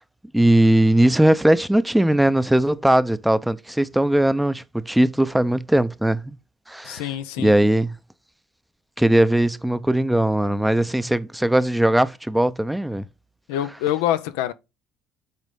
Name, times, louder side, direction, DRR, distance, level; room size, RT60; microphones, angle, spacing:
voice 1, 0.3-6.4 6.7-7.0 7.4-8.0 9.0-13.0, right 1 dB, 5° right, 0.6 m, -19 dB
voice 2, 6.8-7.5 13.5-14.5, left 12 dB, 85° left, 0.6 m, -25 dB
8.2 x 4.1 x 3.7 m
supercardioid pair, 80°, 0 cm